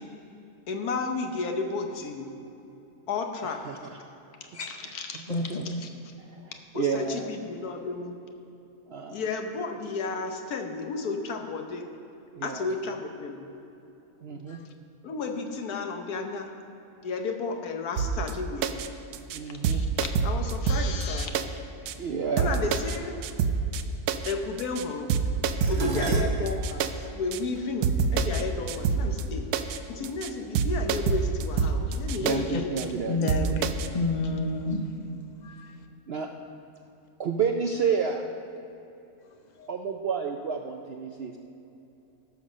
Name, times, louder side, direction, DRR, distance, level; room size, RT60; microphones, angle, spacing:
voice 1, 0.7-2.3 3.1-3.6 4.7-5.9 6.7-8.2 9.1-11.8 12.4-13.5 15.0-16.5 17.0-18.8 19.7-21.4 22.4-23.2 24.2-25.1 25.7-26.8 27.1-29.4 29.9-33.5, left 4 dB, 75° left, 4 dB, 1.4 m, -33 dB
voice 2, 3.4-4.0 4.7-5.7 6.3-7.3 8.9-9.2 12.3-12.7 14.2-14.6 19.3-19.8 22.0-22.7 25.8-26.2 32.2-33.3 36.1-36.3 37.2-38.2 39.7-41.4, right 6 dB, 65° right, 3 dB, 0.6 m, -31 dB
voice 3, 5.3-5.6 14.5-14.6 33.1-33.7 33.9-34.8 35.4-35.7 39.6-39.7, left 2 dB, 40° left, 5 dB, 0.6 m, -29 dB
sound 1, 18.0-18.3 18.6-18.9 19.1-19.4 19.6-21.4 21.9-22.0 22.4-23.0 23.2-23.8 24.1-24.3 24.6-24.8 25.1-26.9 27.3-27.4 27.8-28.4 28.7-29.2 29.5-29.8 30.0-30.3 30.6-32.4 32.8-32.9 33.3-33.9, right 6 dB, 80° right, 1.1 m, -26 dB
Dishes pots and pans, 25.6-30.0 30.9-31.3 31.6-32.5 32.7-32.8, right 3 dB, 50° right, 1.0 m, -40 dB
14.0 x 6.0 x 6.3 m, 2.9 s
omnidirectional pair, 1.6 m